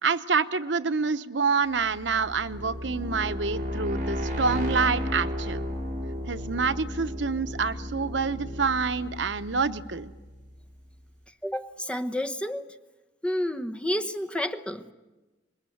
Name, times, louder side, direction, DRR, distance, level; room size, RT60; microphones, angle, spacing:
voice 1, 0.0-5.6 6.3-10.1, right 5 dB, 80° right, 11 dB, 0.9 m, -27 dB
sound 1, 1.8-10.6, equal, 45° right, 6.1 m, -34 dB
voice 2, 11.4-12.7 13.2-14.8, left 1 dB, 5° left, 7 dB, 1.0 m, -30 dB
26.0 x 22.0 x 9.3 m, 1.2 s
head